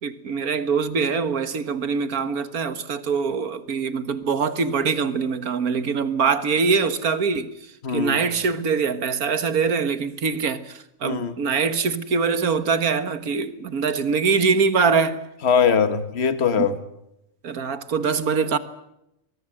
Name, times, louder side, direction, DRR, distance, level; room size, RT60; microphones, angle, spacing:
voice 1, 0.0-7.5 7.9-15.2 16.6-16.7 17.4-18.6, right 5 dB, 75° right, 1.8 m, -23 dB
voice 2, 7.8-8.2 11.0-11.3 15.4-16.8, left 6 dB, 45° left, 1.7 m, -21 dB
23.5 x 22.0 x 7.7 m
omnidirectional pair, 1.6 m